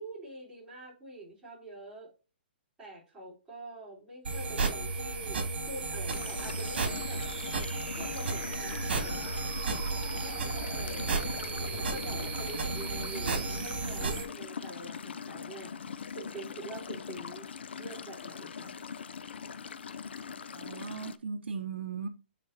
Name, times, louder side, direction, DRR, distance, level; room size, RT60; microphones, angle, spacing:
voice 1, 0.0-2.1 2.8-7.2 7.9-9.5 10.2-15.7 16.1-17.5 17.8-18.8, right 2 dB, 10° right, 3.8 m, -46 dB
sound 1, 4.3-14.2, right 3 dB, 65° right, 2.6 m, -33 dB
sound 2, 6.1-21.2, left 6 dB, 85° left, 0.6 m, -42 dB
voice 2, 20.5-22.1, right 5 dB, 90° right, 1.0 m, -37 dB
7.9 x 4.3 x 2.7 m
hypercardioid pair, 160°, 6 cm